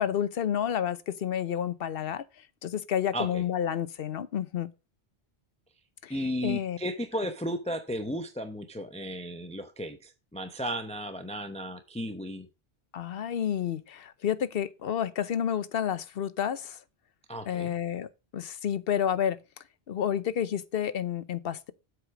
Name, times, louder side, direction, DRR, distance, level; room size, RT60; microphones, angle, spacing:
voice 1, 0.0-2.2 2.6-4.7 6.0-6.1 6.4-6.8 12.9-16.8 17.5-18.1 18.3-19.4 19.9-21.7, left 9 dB, 65° left, 0.9 m, -30 dB
voice 2, 3.1-3.4 6.1-12.5 17.3-17.7, equal, 5° left, 0.7 m, -34 dB
8.1 x 4.8 x 6.0 m
omnidirectional pair, 1.1 m